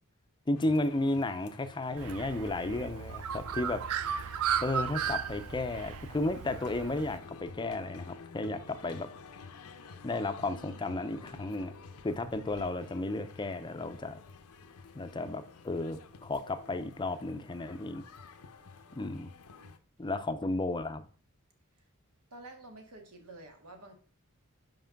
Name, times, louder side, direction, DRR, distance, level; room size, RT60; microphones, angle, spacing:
sound 1, 0.5-19.8, left 4 dB, 90° left, 0.7 m, -51 dB
voice 1, 0.5-3.8 4.6-9.1 10.0-11.7 12.0-14.2 14.9-18.0 19.0-19.3 20.0-21.1, left 2 dB, 20° left, 0.5 m, -33 dB
Bird, 2.0-7.2, right 8 dB, 70° right, 0.4 m, -35 dB
voice 2, 22.3-23.9, right 2 dB, 85° right, 1.7 m, -50 dB
5.7 x 5.3 x 5.1 m
head